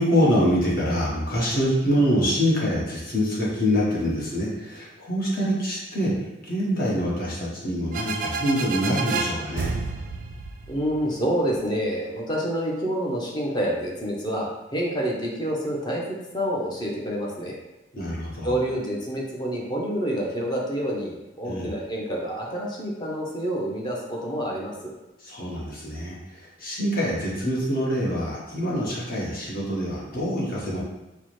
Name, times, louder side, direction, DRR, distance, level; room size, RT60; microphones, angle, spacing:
voice 1, 0.0-6.1 6.4-9.7 17.9-18.6 21.4-21.7 25.2-30.8, equal, 50° left, -5 dB, 1.1 m, -25 dB
sound 1, 7.9-11.6, right 4 dB, 45° right, 0.3 m, -30 dB
voice 2, 10.7-17.5 18.4-24.7, equal, 25° left, -3 dB, 0.7 m, -28 dB
4.5 x 2.1 x 3.0 m, 0.99 s
head